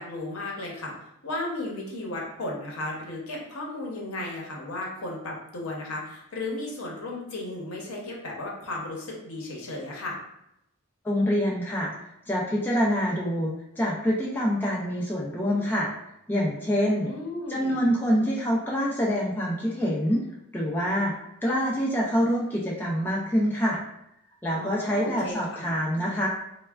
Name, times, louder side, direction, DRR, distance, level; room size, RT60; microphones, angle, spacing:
voice 1, 0.0-10.2 17.1-17.8 24.5-25.8, left 2 dB, 75° left, -2 dB, 0.7 m, -35 dB
voice 2, 11.0-11.9 12.3-15.9 16.3-17.1 17.5-20.3 20.5-21.1 21.4-23.8 24.4-26.3, equal, 10° left, -5 dB, 0.3 m, -26 dB
3.2 x 2.1 x 2.3 m, 0.80 s
head